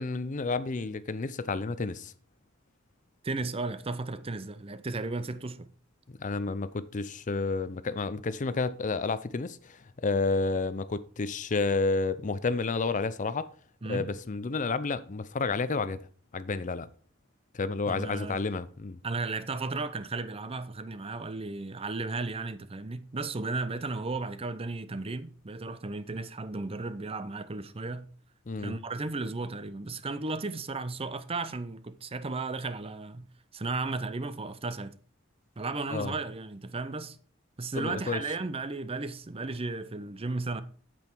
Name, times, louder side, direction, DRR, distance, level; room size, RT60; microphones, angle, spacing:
voice 1, 0.0-2.1 6.2-13.5 13.9-16.0 16.3-16.9 17.5-19.0 28.5-28.8 35.9-36.2 37.7-38.2, left 3 dB, 40° left, 0.5 m, -30 dB
voice 2, 3.2-5.7 13.8-14.1 17.9-18.4 19.0-28.1 28.6-33.3 33.5-35.0 35.6-37.2 37.6-40.6, right 3 dB, 30° right, 0.6 m, -34 dB
8.7 x 7.9 x 4.5 m
head